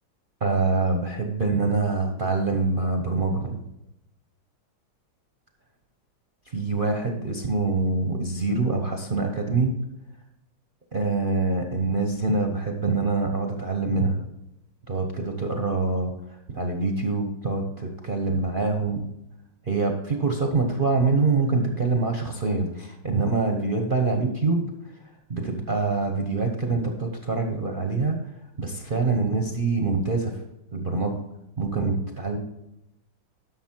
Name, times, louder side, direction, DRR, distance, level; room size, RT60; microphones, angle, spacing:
voice 1, 0.4-3.6 6.5-9.7 10.9-14.2 14.9-16.1 16.5-19.1 19.7-24.7 25.3-28.2 28.6-30.3 30.7-31.2 31.6-32.4, right 3 dB, 45° right, 3 dB, 0.6 m, -25 dB
11.5 x 6.4 x 4.5 m, 0.87 s
omnidirectional pair, 2.3 m